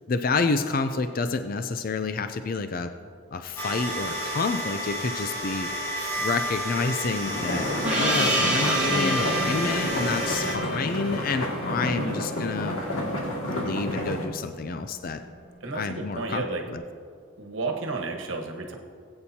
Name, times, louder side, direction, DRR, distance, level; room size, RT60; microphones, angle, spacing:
voice 1, 0.1-2.9 3.3-5.9 6.2-12.8 13.5-15.2 15.7-16.4 16.7-16.8, left 4 dB, 45° left, 9 dB, 0.4 m, -29 dB
sound 1, 3.6-10.5, equal, 10° left, 1.9 m, -31 dB
sound 2, 7.2-14.3, left 1 dB, 80° left, 2.2 m, -30 dB
Gong, 7.8-12.9, right 1 dB, 5° right, 2.0 m, -29 dB
voice 2, 15.6-16.6 17.4-18.8, right 3 dB, 70° right, 2 dB, 1.3 m, -32 dB
20.0 x 8.7 x 2.8 m, 2.2 s
head